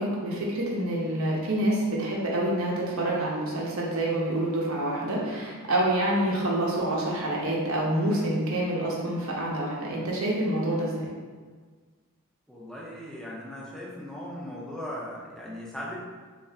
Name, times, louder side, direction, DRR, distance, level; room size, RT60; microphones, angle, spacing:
voice 1, 0.0-11.1, right 1 dB, 70° right, -3 dB, 0.8 m, -27 dB
voice 2, 12.5-16.0, left 1 dB, ahead, -6 dB, 0.6 m, -38 dB
3.7 x 2.5 x 3.3 m, 1.5 s
head